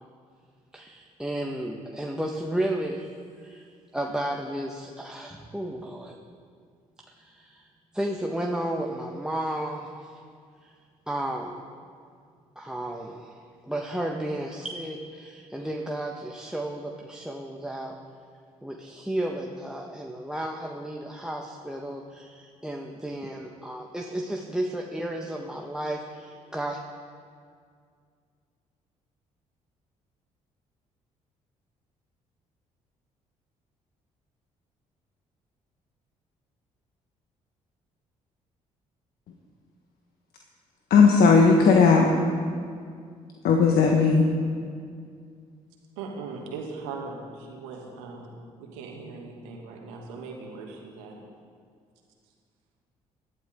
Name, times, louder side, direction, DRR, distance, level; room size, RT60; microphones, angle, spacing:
voice 1, 0.7-3.1 3.4-6.2 7.1-7.7 7.9-10.2 10.6-10.7 11.1-11.6 12.5-18.0 18.6-26.8, right 1 dB, 5° right, 1 dB, 1.6 m, -33 dB
voice 2, 40.9-42.1 43.4-44.2, left 5 dB, 65° left, 1 dB, 1.5 m, -17 dB
voice 3, 46.0-51.2, right 4 dB, 80° right, 0 dB, 2.3 m, -39 dB
19.5 x 12.5 x 3.9 m, 2.2 s
hypercardioid pair, 50°, 17 cm